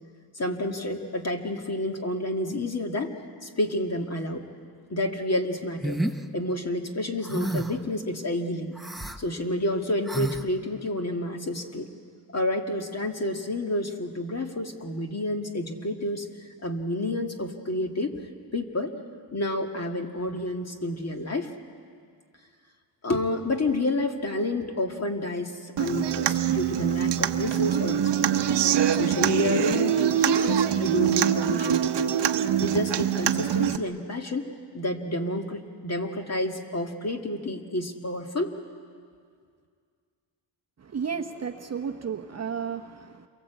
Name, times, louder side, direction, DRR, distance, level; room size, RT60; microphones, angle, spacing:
voice 1, 0.4-4.4 4.9-6.0 6.3-8.7 9.2-11.9 12.3-16.3 16.6-18.2 18.5-18.9 19.3-21.5 23.0-28.4 28.9-32.1 32.6-34.5 34.7-38.5, left 1 dB, 35° left, 3 dB, 2.0 m, -29 dB
sound 1, 5.8-6.2 7.3-7.8 8.8-9.2 10.1-10.4, right 1 dB, ahead, 0.9 m, -29 dB
Human voice / Acoustic guitar, 25.8-33.8, right 9 dB, 60° right, 0.9 m, -24 dB
voice 2, 40.8-43.3, right 6 dB, 35° right, 5 dB, 0.9 m, -33 dB
28.5 x 23.0 x 8.1 m, 2.1 s
wide cardioid pair, 140°, 46 cm